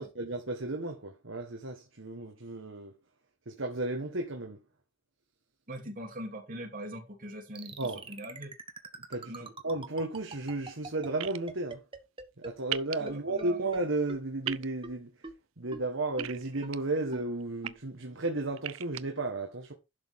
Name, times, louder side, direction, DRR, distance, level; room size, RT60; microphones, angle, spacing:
voice 1, 0.0-2.9 3.5-4.6 7.8-8.0 9.1-11.8 12.4-15.1 15.6-19.7, right 2 dB, 70° right, 1.4 m, -34 dB
voice 2, 5.7-8.5 9.3-9.5 13.0-13.7, right 1 dB, 45° right, 3.1 m, -42 dB
sound 1, 7.6-12.8 13.1-13.2 13.4-13.5 13.7-13.8 14.1-14.2 14.5-14.6 14.8-14.9 15.2-15.3 15.7-15.8 16.2-16.3 16.6-16.7 17.1-17.2 17.6-17.8, right 3 dB, 25° right, 1.3 m, -42 dB
sound 2, 11.2-11.4 12.7-13.0 14.4-14.7 16.2-16.8 17.4-17.7 18.6-19.0, right 13 dB, 85° right, 0.5 m, -36 dB
11.5 x 6.3 x 3.6 m
head